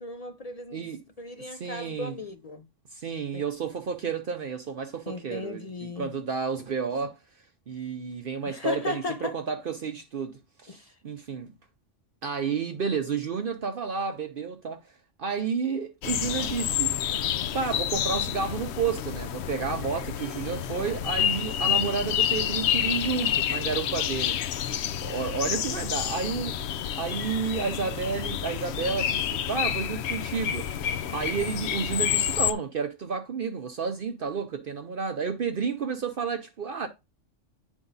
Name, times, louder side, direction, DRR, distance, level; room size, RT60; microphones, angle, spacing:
voice 1, 0.0-0.9 1.2-2.6 3.3-3.4 5.1-6.1 8.5-9.4 10.7-10.8, left 3 dB, 50° left, 0.4 m, -36 dB
voice 2, 0.7-1.0 1.4-2.1 2.9-7.2 7.7-11.5 12.2-14.8 15.2-17.0 17.5-24.4 25.0-26.6 27.0-30.7 31.1-36.9, right 5 dB, 55° right, 0.7 m, -31 dB
sound 1, 16.0-32.5, left 10 dB, 70° left, 0.8 m, -29 dB
9.0 x 3.6 x 3.9 m
omnidirectional pair, 1.3 m